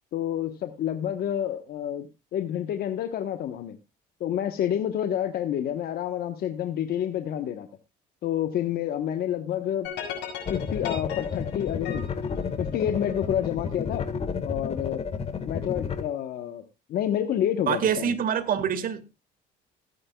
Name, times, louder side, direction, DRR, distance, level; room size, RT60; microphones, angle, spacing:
voice 1, 0.1-3.8 4.2-7.7 8.2-9.9 10.5-12.0 12.6-14.1 14.4-15.0 15.5-16.6 16.9-18.1, left 10 dB, 65° left, 1.2 m, -29 dB
sound 1, 9.8-13.2, left 8 dB, 90° left, 6.4 m, -37 dB
sound 2, 10.5-16.0, left 6 dB, 35° left, 1.7 m, -31 dB
voice 2, 17.7-19.2, right 8 dB, 55° right, 1.8 m, -26 dB
20.5 x 9.7 x 2.3 m
cardioid pair, 110°, 17 cm